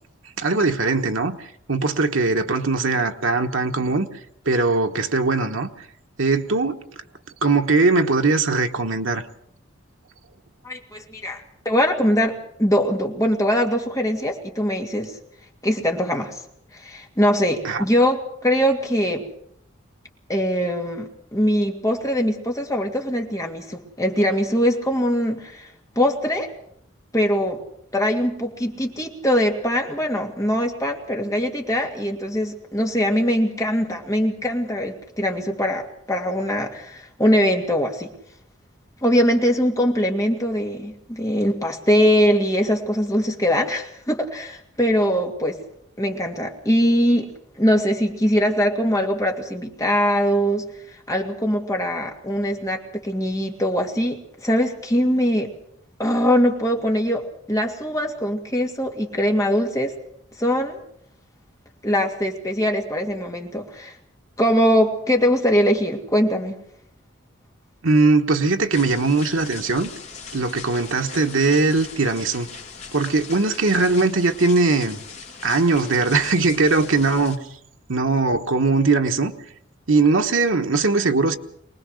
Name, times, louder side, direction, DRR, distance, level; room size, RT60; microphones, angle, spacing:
voice 1, 0.4-4.1 4.5-5.7 6.2-6.8 7.4-9.2 17.6-17.8 67.8-69.9 70.3-72.5 72.9-75.0 75.4-77.4 77.9-79.3 79.9-81.4, right 3 dB, 80° right, 1.3 m, -20 dB
voice 2, 10.6-15.1 15.6-16.4 16.7-19.2 20.3-25.7 26.0-26.5 27.1-27.6 27.9-38.1 39.0-45.6 46.0-47.3 47.6-50.6 51.1-55.5 56.0-59.9 60.4-60.8 61.8-63.9 64.4-66.6, equal, 15° left, 2.4 m, -22 dB
sound 1, 68.7-77.4, left 5 dB, 35° left, 2.7 m, -40 dB
24.0 x 19.5 x 6.4 m
head